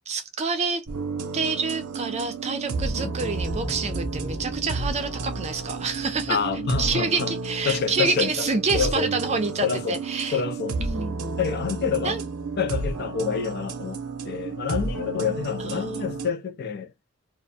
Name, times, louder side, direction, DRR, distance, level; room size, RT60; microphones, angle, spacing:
voice 1, 0.1-0.8 1.3-6.4 6.8-10.4 10.8-11.3 12.0-12.2 15.6-16.0, right 4 dB, 30° right, 0.4 m, -28 dB
sound 1, 0.9-16.3, right 3 dB, 80° right, 0.6 m, -32 dB
sound 2, 3.2-7.9, right 1 dB, 5° left, 0.7 m, -36 dB
voice 2, 6.3-7.3 7.7-9.1 9.6-10.0 10.3-10.8 11.4-12.2 12.6-14.0 14.2-16.9, left 6 dB, 45° left, 0.4 m, -27 dB
2.4 x 2.1 x 2.7 m
head